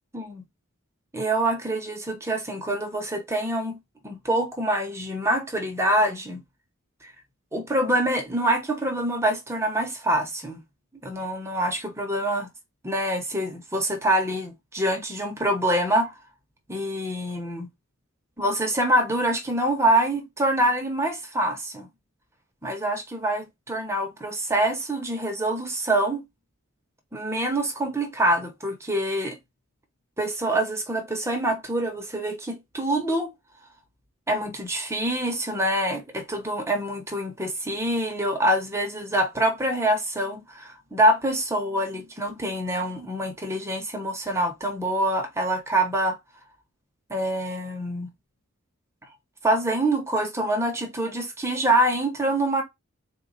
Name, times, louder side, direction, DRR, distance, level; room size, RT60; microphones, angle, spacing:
voice 1, 0.1-0.4 1.1-3.8 4.0-6.4 7.0-7.1 7.5-10.6 11.0-12.5 12.8-16.1 16.7-17.7 18.4-21.9 22.6-26.2 27.1-29.4 30.2-33.3 34.3-46.2 47.1-48.1 49.4-52.6, right 1 dB, 15° right, 0.8 m, -25 dB
4.1 x 2.2 x 3.8 m
head